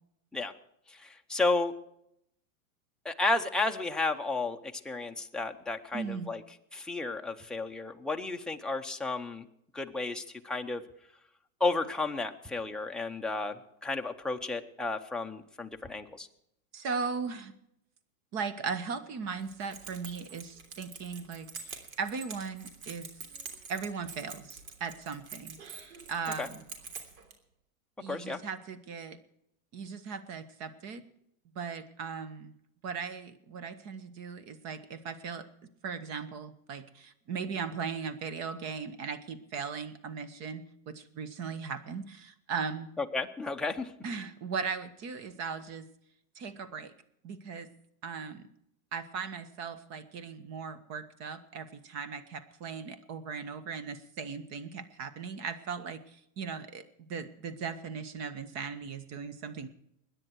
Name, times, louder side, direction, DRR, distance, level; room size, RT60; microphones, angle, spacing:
voice 1, 0.9-1.7 3.0-6.4 6.7-9.5 9.7-10.8 11.6-16.3 26.4-26.5 28.1-28.4 43.0-43.9, left 3 dB, ahead, 2 dB, 0.7 m, -32 dB
voice 2, 5.9-6.3 16.7-17.5 18.3-23.1 23.7-25.6 26.1-26.6 28.0-29.2 29.7-31.0 31.5-32.5 32.8-35.5 35.8-42.9 44.0-45.9 46.3-46.9 47.2-47.7 48.0-48.5 48.9-56.0 56.4-59.7, right 5 dB, 35° right, 15 dB, 1.4 m, -38 dB
Keys jangling, 19.4-27.3, right 5 dB, 75° right, 3.2 m, -46 dB
21.5 x 10.0 x 4.7 m, 0.76 s
supercardioid pair, 135°, 43 cm